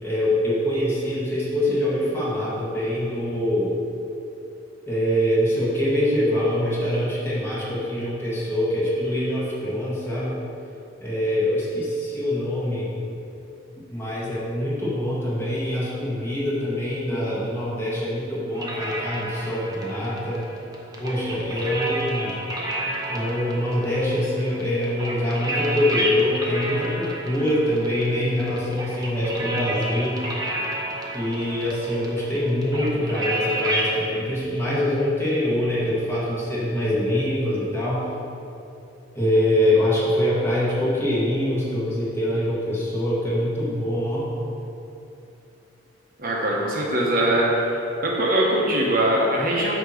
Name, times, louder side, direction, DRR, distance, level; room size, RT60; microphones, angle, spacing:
voice 1, 0.0-3.7 4.9-10.4 11.0-12.9 13.9-20.4 21.0-22.3 23.1-30.2 31.1-38.1 39.1-44.3, left 1 dB, 10° left, -9 dB, 1.6 m, -24 dB
sound 1, 18.6-34.0, right 1 dB, 20° right, 0.7 m, -31 dB
voice 2, 46.2-47.7 48.0-49.8, right 1 dB, 45° right, -3 dB, 0.9 m, -21 dB
8.5 x 2.9 x 6.3 m, 2.8 s
head